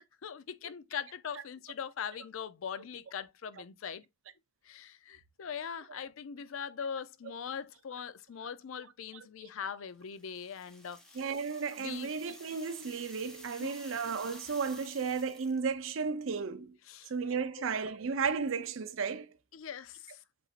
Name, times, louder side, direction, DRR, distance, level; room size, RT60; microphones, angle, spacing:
voice 1, 0.2-4.0 4.6-11.2 11.7-12.2 13.6-13.7 16.8-17.7 19.5-20.2, left 7 dB, 75° left, 0.4 m, -41 dB
sound 1, 10.1-15.7, equal, 5° left, 0.8 m, -52 dB
voice 2, 11.2-16.7 17.1-19.3, right 5 dB, 70° right, 0.5 m, -34 dB
7.8 x 2.6 x 2.4 m
head